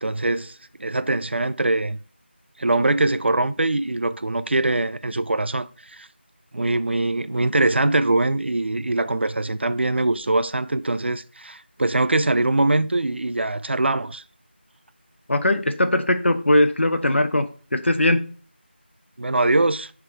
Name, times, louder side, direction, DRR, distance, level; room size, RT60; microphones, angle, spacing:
voice 1, 0.0-2.0 2.6-6.1 6.5-14.2 19.2-19.9, right 2 dB, 70° right, 0.4 m, -22 dB
voice 2, 15.3-18.3, left 1 dB, 85° left, 0.8 m, -20 dB
8.5 x 3.7 x 3.2 m
figure-of-eight pair, 175°, 6 cm